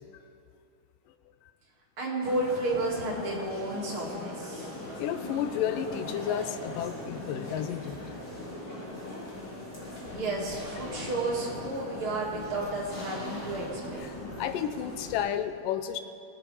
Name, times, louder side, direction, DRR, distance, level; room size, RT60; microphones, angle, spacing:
voice 1, 2.0-4.7 10.1-14.1, right 2 dB, 40° right, -4 dB, 2.9 m, -32 dB
sound 1, 2.2-15.2, left 1 dB, 30° left, 2.5 m, -40 dB
voice 2, 4.9-8.2 14.0-16.0, left 9 dB, 85° left, 10 dB, 2.3 m, -32 dB
20.5 x 8.9 x 4.9 m, 2.5 s
omnidirectional pair, 3.8 m